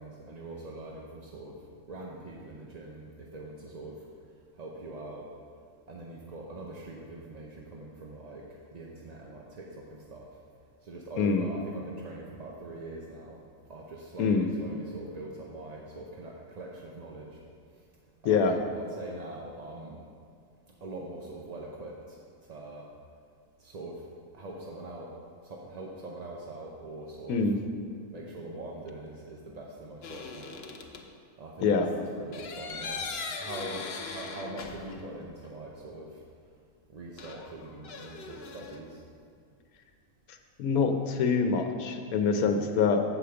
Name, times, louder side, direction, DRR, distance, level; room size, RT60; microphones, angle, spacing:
voice 1, 0.0-1.6 1.9-4.0 4.5-5.3 5.9-8.4 8.7-10.3 10.8-13.4 13.7-17.4 18.2-20.0 20.8-22.2 22.5-22.8 23.6-24.0 24.3-25.1 25.4-27.4 28.1-30.6 31.4-33.1 33.4-36.2 36.9-39.0, right 2 dB, 40° right, -2 dB, 0.6 m, -43 dB
sound 1, 30.0-31.1 32.3-35.2 35.4-35.5 37.2-38.8, left 4 dB, 55° left, 0.8 m, -40 dB
voice 2, 40.6-43.0, left 5 dB, 85° left, 5 dB, 1.2 m, -25 dB
8.0 x 5.0 x 6.9 m, 2.3 s
omnidirectional pair, 1.5 m